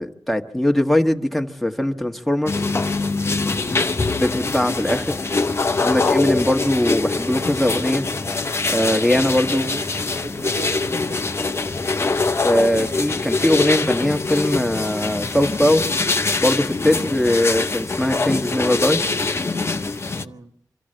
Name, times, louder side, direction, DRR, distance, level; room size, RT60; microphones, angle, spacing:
voice 1, 0.0-2.6 4.2-5.2 5.8-8.0 8.7-9.7 12.4-15.8 16.4-19.0, left 1 dB, ahead, 1.4 m, -20 dB
sound 1, 2.5-20.2, left 3 dB, 40° left, 0.7 m, -23 dB
voice 2, 3.5-3.9 9.5-9.9 10.2-11.2 20.1-20.5, right 3 dB, 55° right, 1.4 m, -36 dB
25.5 x 13.5 x 7.7 m
wide cardioid pair, 80°, 7 cm